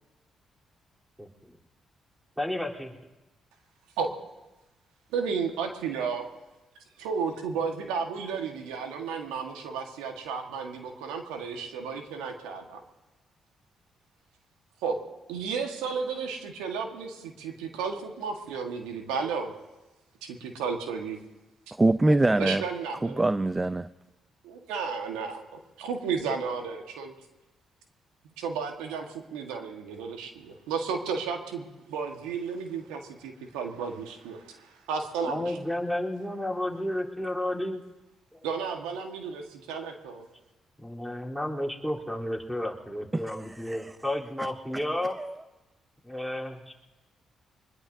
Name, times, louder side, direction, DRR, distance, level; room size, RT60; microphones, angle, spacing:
voice 1, 1.2-1.6 2.4-2.9 35.3-37.8 38.3-38.5 40.8-45.2 46.0-46.7, left 1 dB, 5° right, 3.6 m, -32 dB
voice 2, 5.1-6.3 7.0-12.8 14.8-14.9 15.3-19.5 20.2-21.2 22.4-23.3 24.4-25.4 25.8-27.1 28.4-35.6 38.4-40.3, right 5 dB, 85° right, 1.5 m, -33 dB
voice 3, 21.8-22.6 23.0-23.9 43.3-43.9 45.2-45.4, right 2 dB, 20° right, 0.5 m, -24 dB
24.5 x 20.5 x 2.7 m
hypercardioid pair, 50°, 0 cm